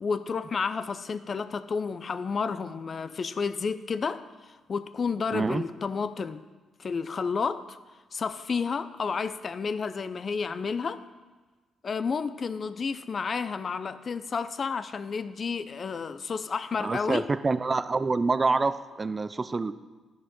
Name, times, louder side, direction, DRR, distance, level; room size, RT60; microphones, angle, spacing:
voice 1, 0.0-6.4 6.8-7.8 8.1-11.0 11.8-17.3, left 5 dB, 50° left, 12 dB, 0.5 m, -31 dB
voice 2, 5.3-5.6 16.8-19.7, right 3 dB, 35° right, 13 dB, 0.4 m, -26 dB
11.0 x 5.1 x 5.4 m, 1.3 s
supercardioid pair, 55°, 0 cm